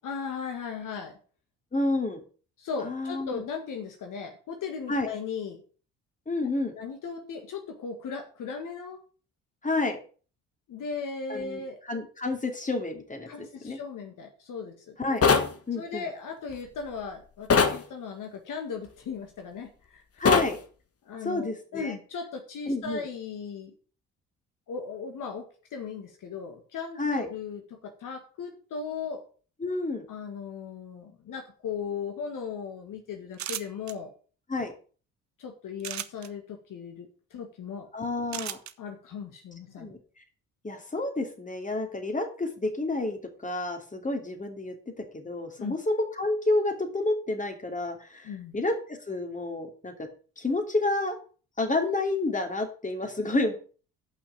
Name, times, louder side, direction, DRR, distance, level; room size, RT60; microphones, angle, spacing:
voice 1, 0.0-1.2 2.6-5.6 6.4-9.0 10.7-11.8 13.3-15.0 15.8-20.2 21.1-23.7 24.7-29.2 30.1-34.1 35.4-37.9 38.8-39.9 45.6-45.7 48.2-48.6, left 5 dB, 60° left, 5 dB, 1.8 m, -37 dB
voice 2, 1.7-2.2 2.8-3.4 4.9-5.1 6.3-6.7 9.6-10.0 11.3-13.8 15.0-15.2 15.7-16.1 20.2-20.6 21.2-21.9 22.7-23.1 27.0-27.3 29.6-30.0 34.5-34.7 37.9-38.6 39.8-40.0 40.6-50.1 50.4-51.2 51.6-53.5, left 2 dB, 20° left, 5 dB, 2.8 m, -30 dB
sound 1, 15.2-15.5 17.5-17.8 20.3-20.5, left 5 dB, 40° left, 1.5 m, -20 dB
sound 2, 33.3-33.9 35.8-36.3 38.3-38.7, right 11 dB, 50° right, 1.0 m, -35 dB
8.8 x 5.8 x 6.9 m, 0.39 s
hypercardioid pair, 55°, 36 cm